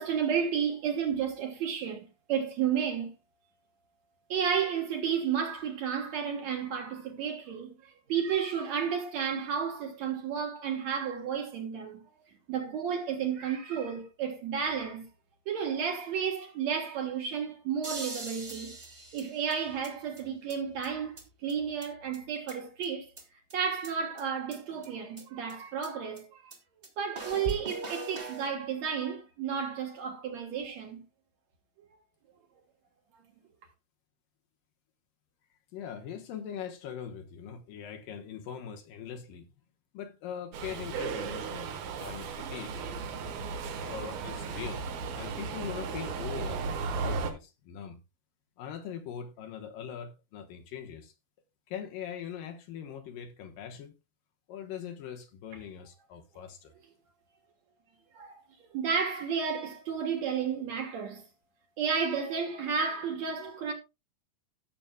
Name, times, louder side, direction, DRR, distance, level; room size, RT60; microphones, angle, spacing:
voice 1, 0.0-3.1 4.3-12.0 12.5-15.1 15.5-18.8 19.1-23.1 23.5-26.5 27.0-31.0 33.1-33.2 58.1-58.4 58.7-61.3 61.8-63.7, right 7 dB, 60° right, 2.2 m, -32 dB
sound 1, 17.8-19.9 20.2-20.3 20.5-20.6 20.8-20.9 21.2-21.3 21.5-21.6 21.8-21.9 22.1-22.9 23.2-23.3 23.5-23.6 23.8-23.9 24.2-24.3 24.5-24.6 24.8-24.9 25.2-25.3 25.5-25.6 25.8-25.9 26.2-26.3 26.5-26.6 26.8-26.9 27.1-28.5, right 3 dB, 25° right, 1.2 m, -40 dB
voice 2, 35.7-39.5 39.9-42.7 43.8-44.8 45.1-48.0 48.6-51.1 51.7-54.0 54.5-56.7, left 8 dB, 75° left, 2.8 m, -41 dB
Subway metro underground, 40.5-47.3, right 5 dB, 85° right, 3.2 m, -35 dB
16.0 x 6.9 x 2.2 m
omnidirectional pair, 4.1 m